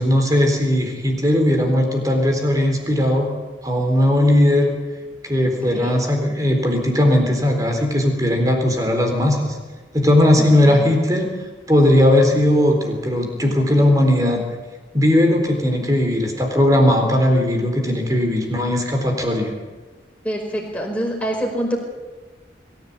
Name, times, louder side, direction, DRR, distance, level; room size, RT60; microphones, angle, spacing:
voice 1, 0.0-3.3 3.6-4.7 5.2-9.6 9.9-11.3 11.7-14.4 14.9-19.5, left 1 dB, 20° right, 3 dB, 3.9 m, -18 dB
voice 2, 10.4-10.8 13.8-13.9 20.2-21.8, equal, 10° left, -1 dB, 5.0 m, -26 dB
22.5 x 15.5 x 8.6 m, 1.3 s
head